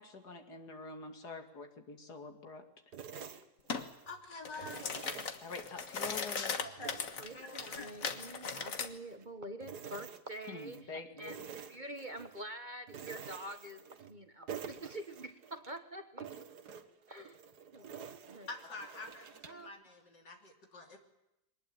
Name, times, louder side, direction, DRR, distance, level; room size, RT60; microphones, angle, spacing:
voice 1, 0.0-2.6 5.4-6.6 10.5-11.4, left 3 dB, 70° left, 6 dB, 3.0 m, -46 dB
sound 1, 2.9-4.2 4.6-6.2 6.6-9.3 9.6-10.9 11.2-12.4 12.9-14.2 14.5-15.8 16.2-19.7, right 7 dB, 70° right, 1.9 m, -49 dB
sound 2, 3.7-3.9 4.3-8.9, left 5 dB, 50° left, 1.8 m, -38 dB
voice 2, 4.1-4.8 6.8-6.9 7.3-7.9 18.5-21.0, left 3 dB, 90° left, 3 dB, 3.7 m, -47 dB
voice 3, 7.2-11.4 11.7-13.8 14.1-16.5 17.1-17.4 17.7-18.0 18.3-18.5 19.4-19.7, right 1 dB, 30° right, 8 dB, 1.2 m, -46 dB
23.0 x 19.5 x 9.2 m, 0.88 s
omnidirectional pair, 1.8 m